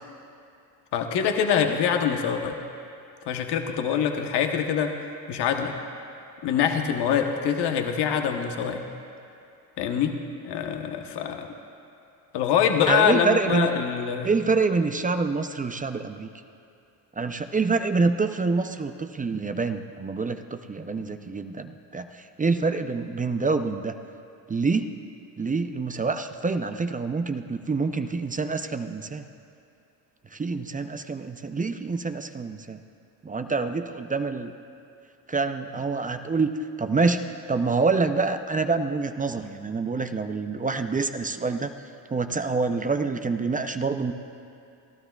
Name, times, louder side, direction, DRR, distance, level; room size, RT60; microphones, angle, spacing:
voice 1, 0.9-2.6 3.3-4.9 5.3-5.7 6.4-8.8 9.8-10.1 10.4-11.5 12.3-14.3, left 8 dB, 70° left, 4 dB, 1.1 m, -24 dB
voice 2, 12.9-13.7 14.2-16.3 17.2-22.1 22.4-23.9 24.5-24.9 25.4-29.3 30.3-32.8 33.2-34.5 35.3-36.5 36.8-41.7 42.1-44.1, right 4 dB, 20° right, 8 dB, 0.5 m, -26 dB
27.5 x 12.5 x 2.4 m, 2.6 s
supercardioid pair, 80°, 43 cm